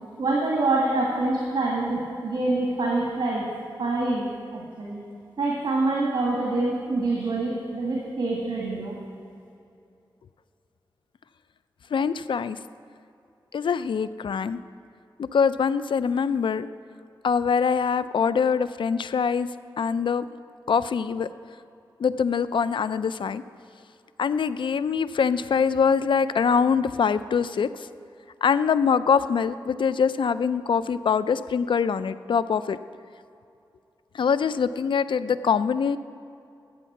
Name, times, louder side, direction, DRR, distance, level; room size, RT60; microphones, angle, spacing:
voice 1, 0.2-3.4 3.8-5.0 5.4-9.0, right 2 dB, 75° right, -3 dB, 2.1 m, -26 dB
voice 2, 11.9-12.6 13.5-14.6 15.2-16.7 17.2-19.5 19.8-20.3 20.7-21.3 22.0-23.4 24.2-27.9 28.4-32.8 34.1-36.0, left 6 dB, 75° left, 14 dB, 0.4 m, -24 dB
13.0 x 8.1 x 5.9 m, 2.6 s
cardioid pair, 55°, 9 cm